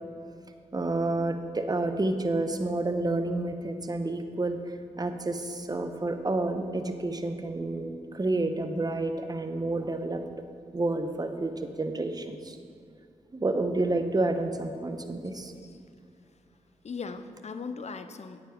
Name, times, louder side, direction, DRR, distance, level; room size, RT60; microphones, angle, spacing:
voice 1, 0.7-4.6 5.0-10.2 10.7-12.6 13.3-15.5, right 2 dB, 25° right, 7 dB, 0.9 m, -29 dB
voice 2, 15.3-15.8 16.8-18.4, left 5 dB, 50° left, 10 dB, 0.7 m, -39 dB
9.0 x 7.5 x 5.1 m, 2.3 s
supercardioid pair, 45°, 15 cm